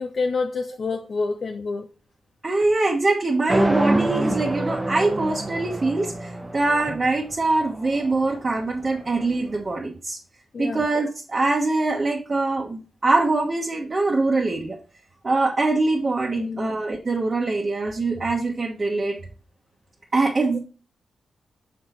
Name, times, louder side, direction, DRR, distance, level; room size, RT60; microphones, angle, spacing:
voice 1, 0.0-1.9 10.5-10.9 16.3-16.7 20.5-20.6, left 4 dB, 55° left, 5 dB, 0.6 m, -27 dB
voice 2, 2.4-10.2 10.6-14.8 15.2-19.2 20.1-20.6, right 2 dB, 40° right, -2 dB, 1.2 m, -23 dB
sound 1, 3.5-9.6, right 1 dB, 15° right, 0.9 m, -27 dB
6.3 x 4.0 x 4.5 m, 0.35 s
cardioid pair, 70°, 0 cm